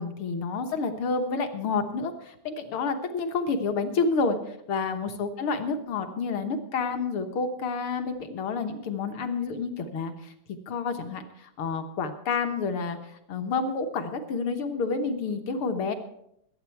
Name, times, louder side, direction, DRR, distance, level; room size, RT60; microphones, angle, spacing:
voice 1, 0.0-10.3 10.7-13.0 13.3-15.9, left 4 dB, 60° left, 7 dB, 1.6 m, -29 dB
20.5 x 8.6 x 4.6 m, 0.75 s
omnidirectional pair, 3.4 m